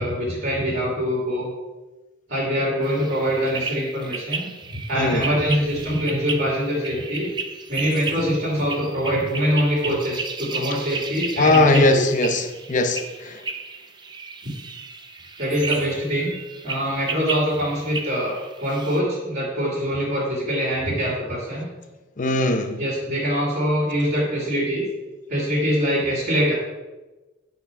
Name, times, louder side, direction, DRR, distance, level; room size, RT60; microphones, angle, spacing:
voice 1, 0.0-1.5 2.3-7.3 7.7-12.0 14.4-14.5 15.4-16.4 16.6-21.7 22.8-24.9 25.3-26.5, equal, 55° right, -8 dB, 2.6 m, -24 dB
sound 1, 2.8-19.0, right 4 dB, 25° right, 0.6 m, -34 dB
voice 2, 11.4-13.4 22.2-22.8, left 2 dB, 45° left, 6 dB, 0.8 m, -20 dB
8.5 x 4.5 x 5.6 m, 1.2 s
head